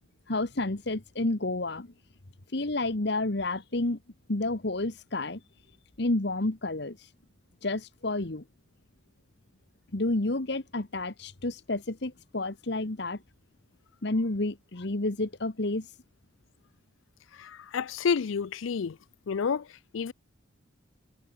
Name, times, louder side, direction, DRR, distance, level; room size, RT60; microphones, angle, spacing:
voice 1, 0.3-1.9 2.5-4.0 4.3-5.4 6.0-7.1 7.6-8.4 9.9-13.2 14.0-15.9, left 2 dB, 55° left, 1.4 m, -30 dB
voice 2, 17.4-19.0 19.3-19.6 19.9-20.1, left 6 dB, 80° left, 0.5 m, -29 dB
head